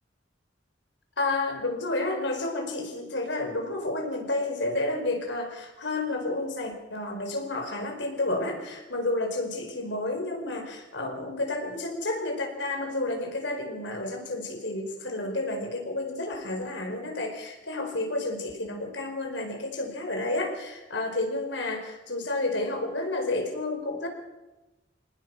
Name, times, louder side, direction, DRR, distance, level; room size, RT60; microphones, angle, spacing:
voice 1, 1.2-24.1, left 2 dB, 80° left, 4 dB, 4.9 m, -30 dB
23.5 x 19.0 x 6.2 m, 1.0 s
head